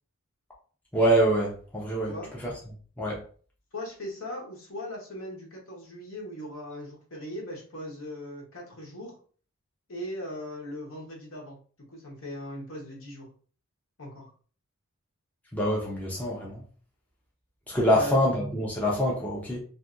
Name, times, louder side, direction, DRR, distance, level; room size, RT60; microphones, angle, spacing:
voice 1, 0.9-2.1 2.4-2.5 3.0-3.2 15.5-16.6 17.7-19.6, equal, 5° left, -4 dB, 0.5 m, -25 dB
voice 2, 3.7-9.2 9.9-11.6 11.9-13.3 14.0-14.3 17.9-18.2, left 1 dB, 65° left, -2 dB, 1.0 m, -39 dB
2.6 x 2.5 x 2.4 m, 0.43 s
head